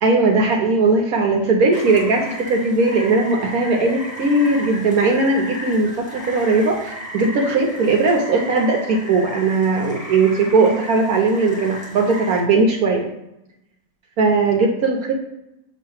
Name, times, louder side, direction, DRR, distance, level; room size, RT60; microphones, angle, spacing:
voice 1, 0.0-13.1 14.2-15.1, right 3 dB, 65° right, 1 dB, 1.1 m, -18 dB
Rain, 1.7-12.4, equal, 5° right, 1.1 m, -35 dB
7.1 x 2.5 x 5.5 m, 0.89 s
omnidirectional pair, 1.8 m